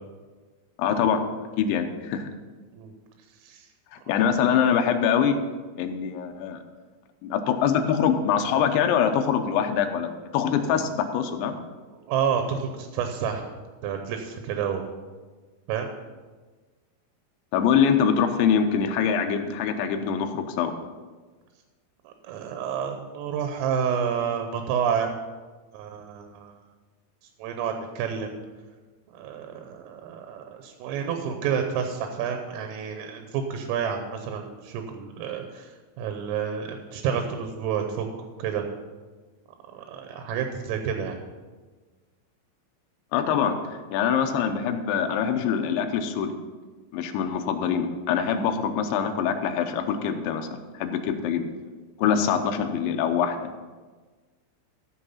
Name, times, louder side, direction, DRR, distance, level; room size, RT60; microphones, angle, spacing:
voice 1, 0.8-1.2 1.6-2.3 4.1-5.4 5.8-6.6 7.2-11.6 17.5-20.7 43.1-46.4 46.9-50.5 50.7-51.5 52.0-53.5, left 7 dB, 80° left, 5 dB, 2.8 m, -24 dB
voice 2, 12.1-13.5 13.8-14.9 15.7-15.9 22.1-25.2 25.7-26.5 27.4-28.3 29.1-35.7 36.0-38.1 38.4-38.6 39.7-41.2, right 7 dB, 80° right, 5 dB, 3.5 m, -29 dB
15.0 x 5.9 x 5.7 m, 1.4 s
omnidirectional pair, 6.0 m